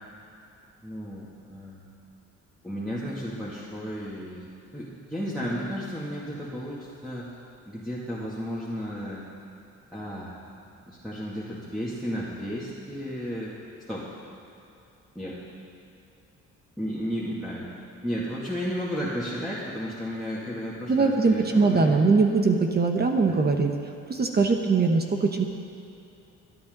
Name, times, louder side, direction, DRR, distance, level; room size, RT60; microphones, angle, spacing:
voice 1, 0.8-1.9 2.6-4.5 4.7-7.3 7.7-9.3 9.9-10.4 10.9-13.5 13.9-14.1 15.1-15.4 16.8-17.7 18.0-22.0 23.3-23.4 24.4-24.5, equal, ahead, -9 dB, 2.6 m, -33 dB
voice 2, 20.9-23.7 24.1-25.5, right 4 dB, 35° right, 3 dB, 1.2 m, -21 dB
25.0 x 9.0 x 4.0 m, 2.8 s
cardioid pair, 90°, 30 cm